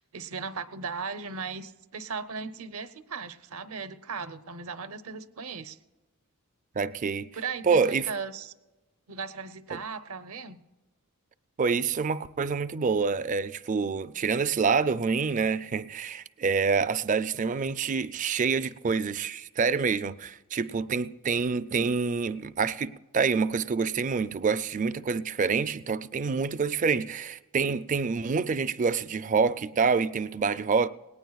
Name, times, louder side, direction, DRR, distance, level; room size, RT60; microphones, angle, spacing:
voice 1, 0.0-5.8 7.3-8.5 9.1-10.6, right 5 dB, 70° right, 0.8 m, -37 dB
voice 2, 6.8-7.3 7.6-8.1 9.7-9.8 11.6-30.9, right 5 dB, 35° right, 0.4 m, -27 dB
19.0 x 18.0 x 2.4 m
head